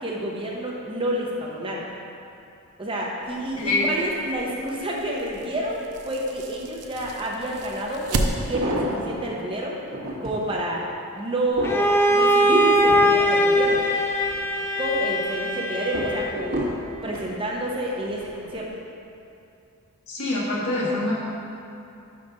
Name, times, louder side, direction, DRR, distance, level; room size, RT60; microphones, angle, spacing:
voice 1, 0.0-1.8 2.8-9.8 10.2-10.8 11.2-13.8 14.8-16.7 17.0-18.7, right 1 dB, 25° right, -2 dB, 0.7 m, -29 dB
sound 1, 3.2-8.8, right 2 dB, 90° right, 0.6 m, -33 dB
voice 2, 3.6-3.9 20.1-21.1, left 2 dB, 70° left, -5 dB, 1.5 m, -25 dB
sound 2, 7.5-7.6 8.3-9.3 9.8-10.5 11.0-14.4 14.8-15.3 15.9-17.3 18.1-18.4 18.7-18.8, right 1 dB, 60° right, 1.4 m, -32 dB
Bowed string instrument, 11.6-16.5, equal, 10° left, 0.4 m, -21 dB
5.6 x 5.3 x 5.3 m, 2.7 s
head